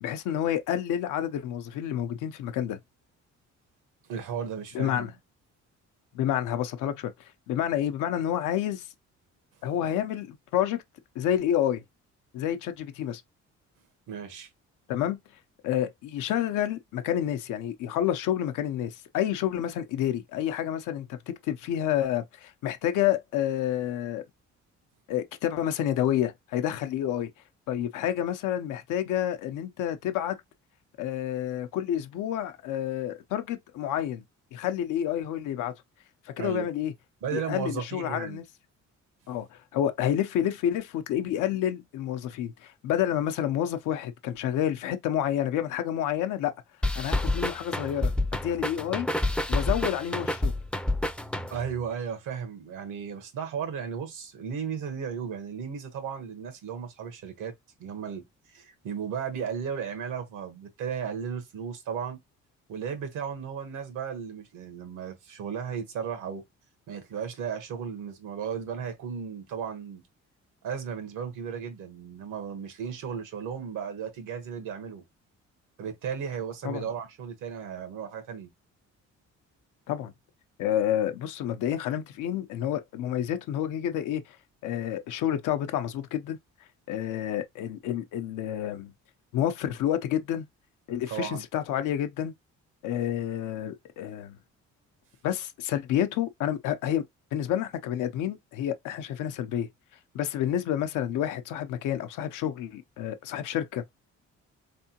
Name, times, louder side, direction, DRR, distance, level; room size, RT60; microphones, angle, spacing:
voice 1, 0.0-2.8 4.7-5.1 6.1-7.1 7.5-8.9 9.6-10.8 11.1-11.8 12.3-13.2 14.9-15.2 15.6-24.2 25.1-27.3 27.7-30.4 31.0-34.2 34.5-35.7 36.4-36.9 37.3-38.4 39.3-46.6 47.0-48.1 48.4-49.1 49.5-50.5 76.6-76.8 79.9-80.1 80.6-84.4 84.6-86.4 86.9-88.9 89.3-90.5 90.9-92.3 92.8-94.4 95.2-97.0 97.3-99.7 100.1-103.9, left 11 dB, 90° left, 0.7 m, -29 dB
voice 2, 4.1-5.1 14.1-14.5 36.4-36.7 37.2-38.4 51.5-57.5 57.8-62.2 62.7-66.4 66.9-70.0 70.6-75.0 75.8-78.5 91.1-91.4, right 7 dB, 85° right, 1.2 m, -35 dB
sound 1, 46.8-51.8, left 1 dB, 5° left, 0.4 m, -28 dB
3.6 x 3.4 x 2.8 m
cardioid pair, 90°, 30 cm